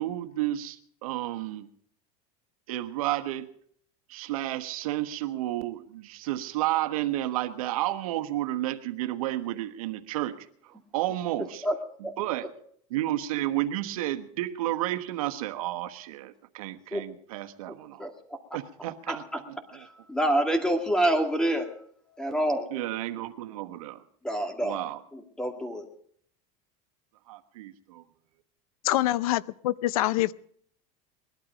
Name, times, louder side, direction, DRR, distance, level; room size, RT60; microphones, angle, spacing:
voice 1, 0.0-1.7 2.7-3.5 4.1-11.6 12.2-12.5 12.9-18.1 18.5-19.9 22.7-24.0 24.6-25.0 27.3-28.0, right 14 dB, 90° right, 7 dB, 1.3 m, -31 dB
voice 2, 11.4-11.7 12.0-12.1 16.9-17.0 18.0-18.1 19.1-19.4 19.7-21.7 22.2-22.7 24.2-24.8 25.1-25.9, right 1 dB, 5° left, 4 dB, 2.2 m, -27 dB
voice 3, 28.8-30.3, left 15 dB, 90° left, 19 dB, 0.6 m, -25 dB
20.5 x 12.0 x 5.2 m, 0.63 s
supercardioid pair, 140°, 18 cm